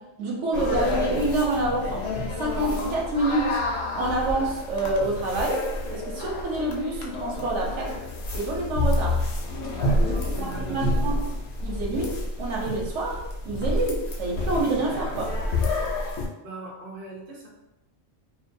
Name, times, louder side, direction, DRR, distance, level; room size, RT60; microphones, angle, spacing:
voice 1, 0.0-2.1 2.4-3.6 3.9-8.0 8.3-9.2 10.0-11.2 11.6-13.2 13.4-15.3, right 2 dB, 70° right, -2 dB, 0.9 m, -27 dB
sound 1, 0.5-16.3, left 2 dB, 65° left, 0.8 m, -29 dB
voice 2, 9.7-11.0 16.4-17.5, right 2 dB, 45° right, -3 dB, 0.5 m, -40 dB
2.5 x 2.2 x 2.5 m, 0.96 s
omnidirectional pair, 1.3 m